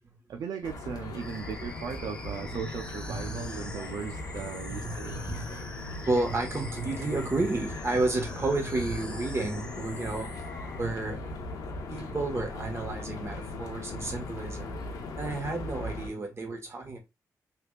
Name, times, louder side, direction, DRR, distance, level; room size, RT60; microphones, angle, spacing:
voice 1, 0.3-5.3, right 6 dB, 80° right, 0.4 m, -37 dB
sound 1, 0.6-16.1, left 2 dB, 85° left, 0.8 m, -39 dB
sound 2, 1.2-10.8, left 1 dB, 15° left, 0.7 m, -46 dB
voice 2, 3.1-3.9 4.7-11.4 11.9-14.8 15.2-17.0, right 2 dB, 45° right, 1.3 m, -32 dB
3.4 x 3.2 x 2.3 m
cardioid pair, 65°, 6 cm